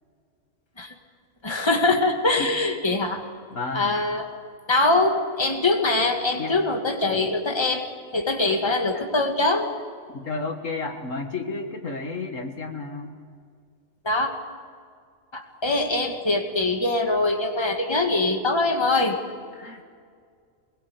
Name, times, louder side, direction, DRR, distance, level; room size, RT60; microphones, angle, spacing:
voice 1, 1.4-3.2 3.7-4.3 4.7-7.9 8.1-9.7 14.0-14.3 15.3-19.2, left 2 dB, 20° left, 3 dB, 2.1 m, -23 dB
voice 2, 3.5-3.9 6.4-6.6 8.9-9.1 10.1-13.2 19.5-19.8, left 3 dB, 60° left, 4 dB, 2.1 m, -32 dB
24.5 x 21.5 x 8.3 m, 2.1 s
omnidirectional pair, 1.5 m